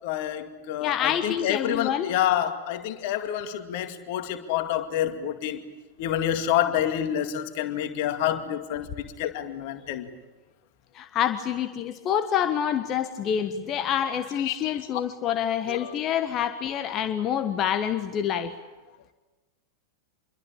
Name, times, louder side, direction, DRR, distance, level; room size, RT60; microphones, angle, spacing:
voice 1, 0.0-5.6 6.0-8.9 9.2-10.1 14.4-14.8 15.7-16.0, left 11 dB, 50° left, 2.3 m, -28 dB
voice 2, 0.8-2.1 10.9-18.5, left 9 dB, 30° left, 1.4 m, -27 dB
27.5 x 23.0 x 8.6 m
figure-of-eight pair, 90°, 0 cm